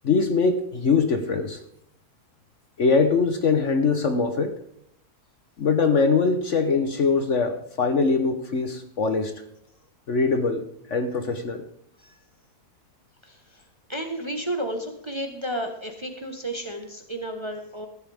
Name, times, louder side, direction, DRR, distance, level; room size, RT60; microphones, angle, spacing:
voice 1, 0.0-1.6 2.8-4.5 5.6-9.3 10.1-10.6 10.9-11.6, left 4 dB, 55° left, 7 dB, 1.2 m, -22 dB
voice 2, 13.2-13.6 13.9-17.9, right 1 dB, 20° right, 4 dB, 1.1 m, -32 dB
14.5 x 11.5 x 3.5 m, 0.71 s
omnidirectional pair, 1.7 m